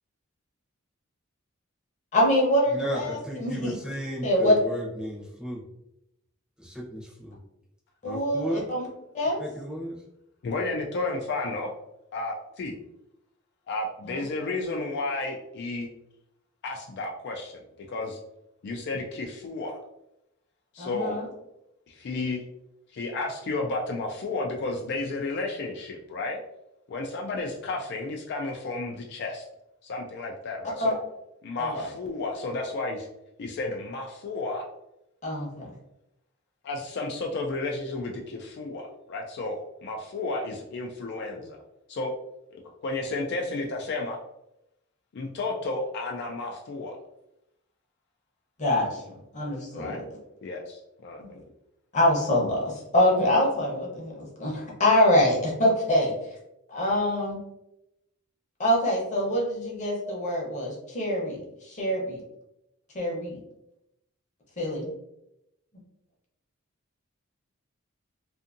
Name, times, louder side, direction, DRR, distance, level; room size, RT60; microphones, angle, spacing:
voice 1, 2.1-3.7 4.2-4.6 8.0-8.9 9.1-9.4 14.0-14.2 20.8-21.3 30.8-30.9 31.6-31.9 35.2-35.7 48.6-50.0 51.2-51.3 51.9-54.1 54.4-56.1 56.7-57.4 58.6-62.2 62.9-63.4 64.6-64.9, left 1 dB, 35° left, -2 dB, 0.8 m, -25 dB
voice 2, 2.7-5.6 6.6-7.4 8.0-8.7 9.4-10.0, equal, 5° right, -6 dB, 0.6 m, -34 dB
voice 3, 10.4-11.7 12.1-12.8 13.7-15.9 16.6-18.2 18.6-19.8 20.7-21.2 21.9-22.4 22.9-26.4 26.9-29.4 29.8-31.0 31.4-33.1 33.4-34.7 36.6-39.6 39.8-41.6 41.9-42.1 42.5-44.2 45.1-47.0 49.7-50.0 50.4-51.4, left 2 dB, 55° left, 1 dB, 0.3 m, -32 dB
2.6 x 2.5 x 2.5 m, 0.86 s
head